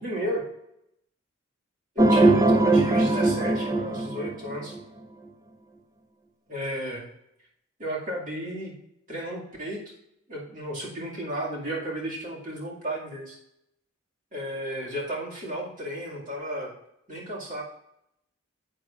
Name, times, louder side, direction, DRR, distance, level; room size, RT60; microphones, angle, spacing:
voice 1, 0.0-0.4 2.0-4.7 6.5-7.0 7.8-8.7 9.1-9.8 10.3-13.4 14.3-16.7 17.1-17.6, equal, 40° right, -4 dB, 2.3 m, -33 dB
sound 1, 2.0-4.8, right 2 dB, 15° right, 0.5 m, -21 dB
10.5 x 7.9 x 2.5 m, 0.80 s
head